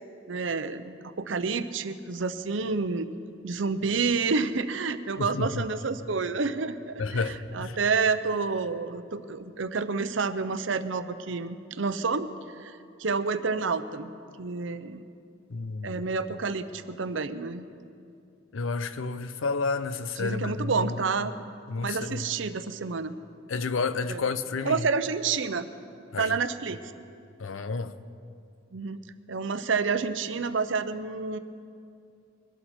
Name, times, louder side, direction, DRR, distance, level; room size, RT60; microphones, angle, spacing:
voice 1, 0.3-3.1 3.4-12.3 12.6-14.1 14.4-15.0 15.8-17.7 20.2-21.4 21.8-23.1 24.1-24.2 24.7-25.7 26.2-26.8 28.7-29.0 29.3-31.4, right 4 dB, 70° right, 0.7 m, -29 dB
voice 2, 5.2-5.6 7.0-7.8 15.5-16.1 18.5-21.0 21.7-22.3 23.5-24.9 26.1-26.4 27.4-27.9, left 4 dB, 85° left, 0.7 m, -31 dB
22.5 x 12.5 x 4.4 m
head